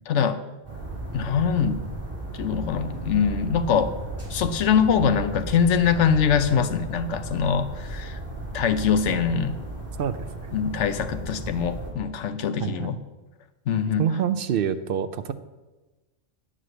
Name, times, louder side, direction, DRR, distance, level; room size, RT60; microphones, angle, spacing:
voice 1, 0.1-0.4 1.1-1.8 2.3-3.9 4.3-8.2 8.5-9.6 10.5-13.0 13.7-14.1, left 7 dB, 75° left, 11 dB, 1.0 m, -23 dB
sound 1, 0.6-11.9, right 1 dB, 10° right, 3.1 m, -35 dB
voice 2, 12.6-12.9 14.0-15.3, right 8 dB, 60° right, 11 dB, 0.6 m, -26 dB
9.6 x 5.1 x 7.7 m, 1.2 s
omnidirectional pair, 1.2 m